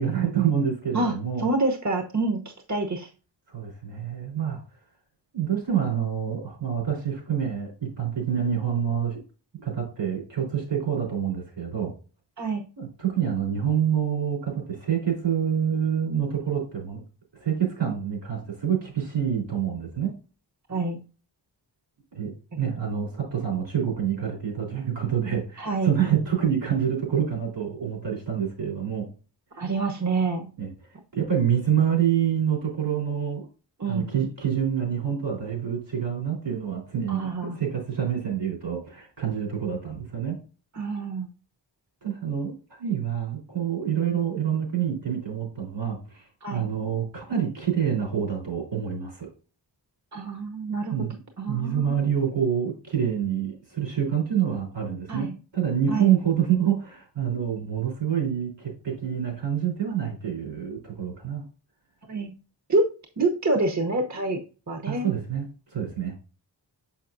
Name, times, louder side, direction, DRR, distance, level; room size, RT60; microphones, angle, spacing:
voice 1, 0.0-1.5 3.5-4.6 5.3-9.2 9.6-11.9 12.8-17.0 17.3-20.1 22.1-29.1 30.6-30.7 31.1-33.5 33.9-40.4 42.0-49.3 50.9-51.2 51.5-55.3 55.5-61.4 64.9-66.1, right 8 dB, 75° right, -2 dB, 3.6 m, -27 dB
voice 2, 0.9-3.1 12.4-12.6 20.7-21.0 25.6-25.9 29.6-30.5 33.8-34.1 37.1-37.6 40.7-41.3 46.4-46.7 50.1-50.9 51.4-52.0 55.1-55.3 55.9-56.1 62.1-62.3 62.7-62.8 63.2-64.4 64.7-65.1, right 3 dB, 40° right, 4 dB, 0.9 m, -27 dB
6.4 x 5.7 x 2.5 m, 0.36 s
wide cardioid pair, 70°, 44 cm